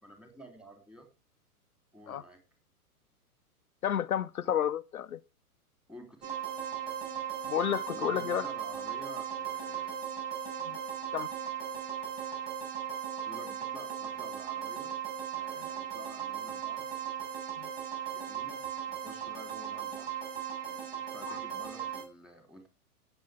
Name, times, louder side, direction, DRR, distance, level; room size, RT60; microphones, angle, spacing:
voice 1, 0.0-1.1 1.9-2.4 5.9-6.3 7.9-10.0 13.3-14.9 15.3-16.9 18.1-18.6 18.9-20.2 20.6-22.7, right 1 dB, ahead, 3.7 m, -50 dB
voice 2, 3.8-5.2 7.5-8.5 10.7-10.8 11.1-11.3 17.6-17.7 21.3-21.4, left 10 dB, 65° left, 0.7 m, -31 dB
sound 1, 6.2-22.0, right 9 dB, 45° right, 6.6 m, -37 dB
16.5 x 8.0 x 3.6 m
figure-of-eight pair, 110°, 46 cm